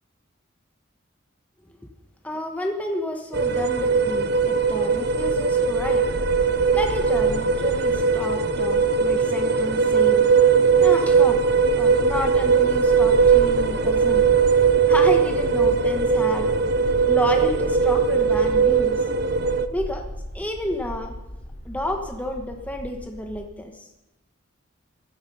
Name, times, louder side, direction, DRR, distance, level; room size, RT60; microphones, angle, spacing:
voice 1, 2.2-6.1 6.7-10.3 10.8-14.3 14.9-16.5 17.1-19.0 19.7-20.1 20.3-21.1 21.6-23.9, left 1 dB, 5° left, 3 dB, 1.2 m, -30 dB
sound 1, 3.3-19.7, right 5 dB, 50° right, 0.7 m, -19 dB
Bark, 4.3-23.4, left 1 dB, 70° left, 2.5 m, -37 dB
15.5 x 13.5 x 5.5 m, 0.98 s
head